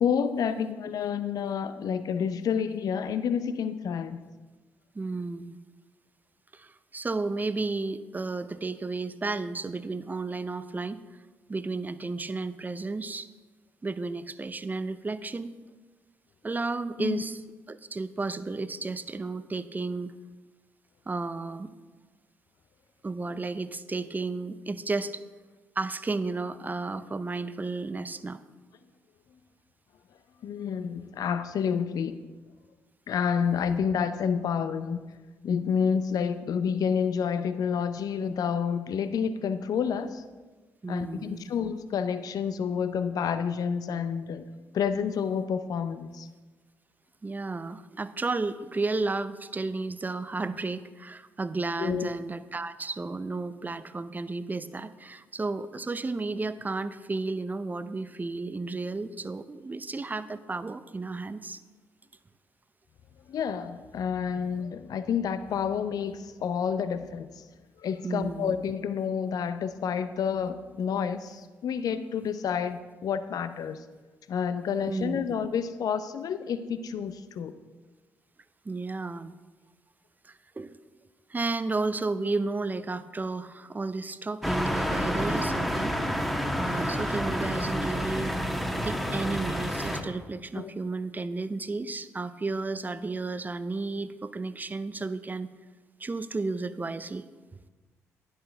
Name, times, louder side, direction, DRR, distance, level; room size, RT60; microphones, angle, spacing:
voice 1, 0.0-4.2 17.0-17.2 30.4-32.2 33.1-35.0 35.4-40.2 40.9-44.4 44.7-46.3 51.8-52.1 63.3-67.4 67.8-73.8 74.3-77.5 90.5-90.7, left 7 dB, 55° left, 12 dB, 0.6 m, -29 dB
voice 2, 4.9-5.6 6.5-11.0 11.5-13.3 13.8-15.5 16.4-17.4 17.7-20.1 21.1-21.7 23.0-25.2 25.8-28.4 40.8-41.5 47.2-61.6 68.0-68.6 74.9-75.2 78.6-79.3 80.2-80.8 81.3-85.9 86.6-88.3 88.8-95.5 96.0-97.3, right 3 dB, 25° right, 13 dB, 0.6 m, -33 dB
sound 1, 84.4-90.0, equal, ahead, 1.3 m, -29 dB
10.5 x 9.7 x 3.4 m, 1.3 s
hypercardioid pair, 45°, 8 cm